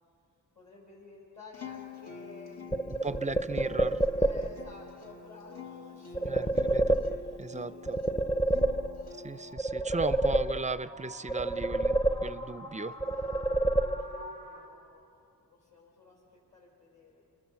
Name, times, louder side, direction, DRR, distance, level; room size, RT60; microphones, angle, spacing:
voice 1, 0.5-2.8 3.1-3.3 4.2-9.3 9.6-10.1 13.0-15.2 15.5-17.2, left 3 dB, 50° left, -6 dB, 5.9 m, -54 dB
sound 1, 1.4-14.7, left 1 dB, 90° left, 3.6 m, -50 dB
Acoustic guitar, 1.5-9.5, left 6 dB, 75° left, 1.9 m, -47 dB
sound 2, 2.7-4.7 6.1-7.5 7.9-9.2 9.6-10.9 11.3-12.7 13.0-14.4, right 2 dB, 15° left, 0.7 m, -28 dB
voice 2, 3.0-4.0 6.2-7.0 7.4-8.0 9.2-12.9, right 3 dB, 20° right, 14 dB, 0.5 m, -36 dB
29.0 x 21.5 x 7.1 m, 2.6 s
wide cardioid pair, 90°, 38 cm